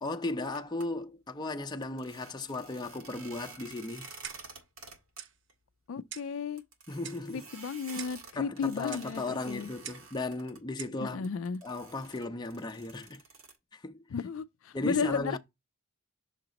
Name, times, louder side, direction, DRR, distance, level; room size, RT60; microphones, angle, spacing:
voice 1, 0.0-4.2 6.9-7.5 8.3-11.3 11.6-13.2 13.7-14.1 14.7-15.4, left 2 dB, 20° left, 0.5 m, -36 dB
sound 1, 0.5-0.9 1.8-5.2 5.5-5.6 5.9-6.0 6.6-10.6 11.2-13.6, right 4 dB, 80° right, 1.8 m, -50 dB
Clock, 4.2-4.6 5.2-5.4 6.1-6.4 7.0-7.3 8.0-8.3 8.9-9.1 9.8-10.1 10.8-11.0, right 9 dB, 55° right, 0.6 m, -44 dB
voice 2, 5.9-6.6 7.3-9.7 11.0-11.6 14.1-15.4, left 6 dB, 70° left, 0.4 m, -34 dB
6.5 x 2.9 x 5.0 m
head